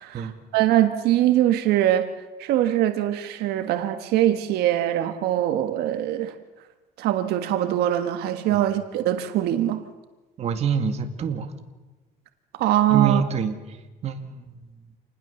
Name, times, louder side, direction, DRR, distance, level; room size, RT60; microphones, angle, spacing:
voice 1, 0.0-2.1 2.4-6.3 7.0-9.8 12.5-13.2, right 12 dB, 75° right, 8 dB, 1.5 m, -22 dB
voice 2, 10.4-11.5 12.9-13.6 14.0-14.4, right 6 dB, 40° right, 7 dB, 2.1 m, -26 dB
28.0 x 20.0 x 7.1 m, 1.2 s
cardioid pair, 140°, 16 cm